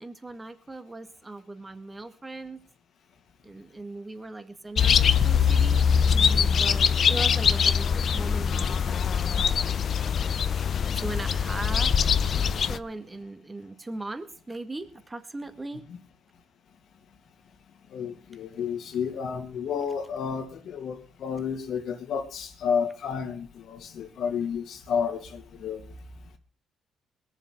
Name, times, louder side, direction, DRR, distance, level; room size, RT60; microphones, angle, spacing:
voice 1, 0.0-2.6 3.4-9.0 9.2-9.8 10.9-12.1 12.6-15.8, right 2 dB, 20° right, 1.9 m, -39 dB
sound 1, 4.8-12.8, left 7 dB, 55° left, 0.7 m, -23 dB
voice 2, 17.9-25.9, left 7 dB, 70° left, 2.3 m, -31 dB
21.5 x 7.3 x 5.3 m
cardioid pair, 90°, 0 cm